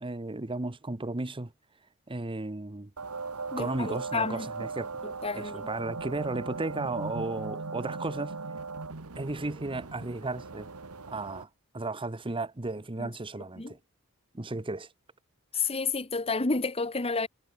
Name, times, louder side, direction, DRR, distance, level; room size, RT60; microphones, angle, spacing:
voice 1, 0.0-1.5 2.1-2.9 3.6-4.9 5.3-8.4 9.2-10.7 11.1-11.5 11.7-13.8 14.3-14.9 15.5-15.7, right 2 dB, 25° right, 1.0 m, -34 dB
sound 1, 3.0-11.4, right 4 dB, 80° right, 1.5 m, -39 dB
voice 2, 3.5-4.5 5.0-5.7 13.0-13.1 13.6-13.7 15.5-17.3, left 4 dB, 25° left, 1.3 m, -30 dB
head